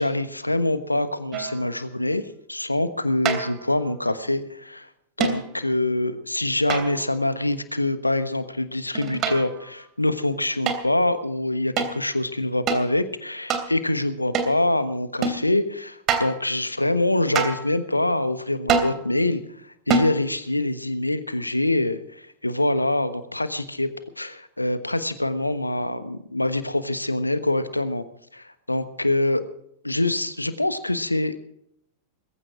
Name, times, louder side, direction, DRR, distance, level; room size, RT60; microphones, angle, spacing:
voice 1, 0.0-2.2 2.5-4.9 5.2-19.4 19.9-23.9 24.2-28.0 28.3-29.4 29.8-31.4, left 1 dB, 85° left, 12 dB, 1.2 m, -25 dB
sound 1, 1.3-1.7 3.3-3.7 5.2-5.5 6.7-7.2 8.9-9.6 10.7-10.9 11.8-12.0 12.7-12.9 13.5-13.7 14.3-14.6 15.2-15.4 16.1-16.4 17.3-17.7 18.7-19.0 19.9-20.2, right 5 dB, 35° right, 3.0 m, -25 dB
21.0 x 15.5 x 3.7 m, 0.73 s
figure-of-eight pair, 90°, 0 cm